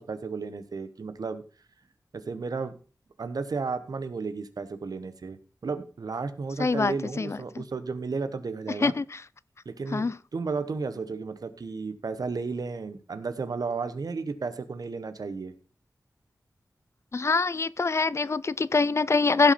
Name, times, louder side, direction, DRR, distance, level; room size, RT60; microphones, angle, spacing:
voice 1, 0.0-1.4 2.1-2.7 3.2-5.4 5.6-8.9 9.6-15.5, right 4 dB, 75° right, 1.0 m, -33 dB
voice 2, 6.6-7.6 8.8-9.2 9.9-10.1 17.1-19.5, left 4 dB, 45° left, 0.4 m, -25 dB
15.5 x 6.2 x 4.2 m
wide cardioid pair, 85°, 6 cm